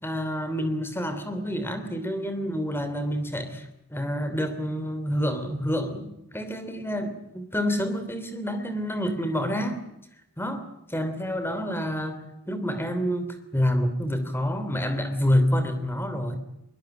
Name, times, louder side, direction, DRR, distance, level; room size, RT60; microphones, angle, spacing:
voice 1, 0.0-9.8 10.4-10.6 10.9-16.4, equal, 10° left, 10 dB, 2.9 m, -28 dB
22.0 x 21.0 x 9.0 m, 0.82 s
head